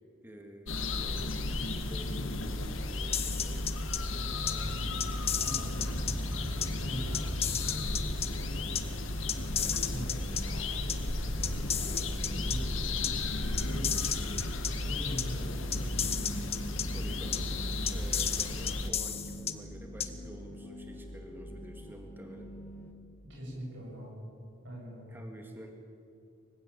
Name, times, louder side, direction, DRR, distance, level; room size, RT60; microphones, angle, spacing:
voice 1, 0.2-3.6 9.6-10.0 16.9-17.6 17.9-22.5 25.1-25.7, equal, 10° right, 3 dB, 2.0 m, -48 dB
sound 1, 0.7-18.9, left 2 dB, 90° left, 1.8 m, -34 dB
sound 2, 3.1-4.0 4.5-4.6 5.0-6.1 6.6-6.7 7.1-8.3 8.8-8.9 9.3-10.4 10.9-11.0 11.4-12.6 13.0-13.1 13.6-14.7 15.2-15.3 15.7-16.8 17.3-17.4 17.9-19.5 20.0-20.1, left 9 dB, 30° left, 1.2 m, -32 dB
sound 3, 3.1-22.9, equal, 10° left, 2.3 m, -46 dB
voice 2, 4.2-8.9 9.9-14.1 14.7-16.5 23.3-24.2 24.6-25.1, equal, 65° right, -2 dB, 7.5 m, -43 dB
23.5 x 16.0 x 8.6 m, 2.5 s
head